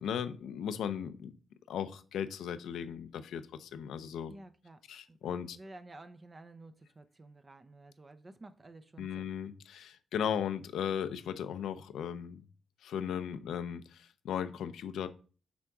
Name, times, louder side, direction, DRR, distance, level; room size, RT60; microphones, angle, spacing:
voice 1, 0.0-1.3 1.7-4.3 4.9-5.6 9.0-12.4 12.8-15.1, left 8 dB, 85° left, 0.5 m, -37 dB
voice 2, 4.3-4.8 5.1-9.3, right 2 dB, 30° right, 0.6 m, -52 dB
6.1 x 3.5 x 5.9 m
cardioid pair, 85°, 0 cm